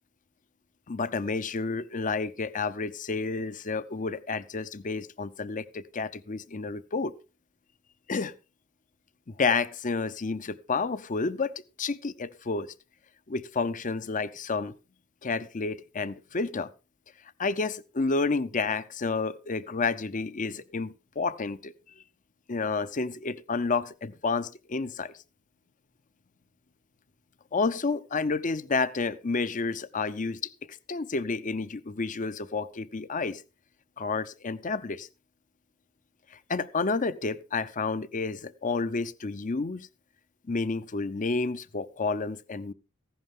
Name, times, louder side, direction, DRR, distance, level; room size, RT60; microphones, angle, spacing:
voice 1, 0.9-7.1 8.1-8.3 9.3-12.7 13.3-14.7 15.2-16.7 17.4-22.0 22.5-25.1 27.5-33.4 34.0-35.1 36.3-39.9 40.5-42.7, left 4 dB, 40° left, 0.7 m, -30 dB
15.0 x 11.0 x 3.7 m
head